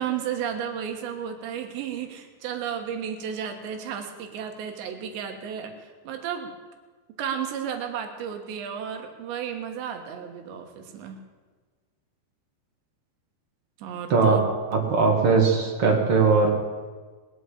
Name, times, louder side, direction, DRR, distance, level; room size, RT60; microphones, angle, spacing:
voice 1, 0.0-6.5 7.2-11.2 13.8-14.4, right 8 dB, 75° right, 5 dB, 3.6 m, -33 dB
voice 2, 14.1-14.4 14.7-16.5, right 4 dB, 45° right, 1 dB, 2.1 m, -20 dB
20.0 x 8.2 x 8.7 m, 1.4 s
omnidirectional pair, 5.2 m